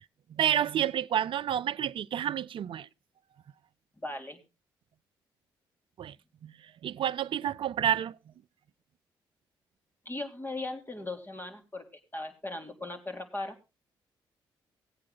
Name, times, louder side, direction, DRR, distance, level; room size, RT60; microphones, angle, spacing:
voice 1, 0.3-2.9 6.0-6.2 6.4-6.5 6.8-8.2, right 10 dB, 60° right, 0.5 m, -29 dB
voice 2, 4.0-4.4 10.0-11.8 12.1-13.6, left 2 dB, 20° left, 3.4 m, -38 dB
16.5 x 8.5 x 3.9 m
supercardioid pair, 50°, 10 cm